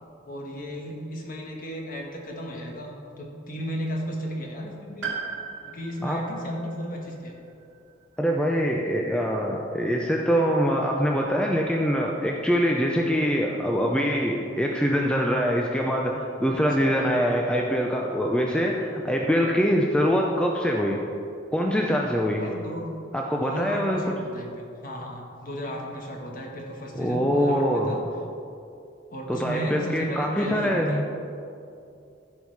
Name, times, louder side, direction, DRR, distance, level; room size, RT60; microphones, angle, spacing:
voice 1, 0.3-5.2 5.7-7.4 16.6-17.1 22.4-22.9 23.3-28.0 29.1-31.0, equal, 45° left, 0 dB, 1.5 m, -35 dB
Piano, 5.0-9.2 10.4-10.5, right 6 dB, 85° right, 1.6 m, -39 dB
voice 2, 8.2-21.0 21.5-22.4 23.1-24.0 27.0-27.9 29.3-31.0, equal, 5° left, -1 dB, 0.5 m, -24 dB
15.0 x 5.4 x 4.7 m, 2.6 s
head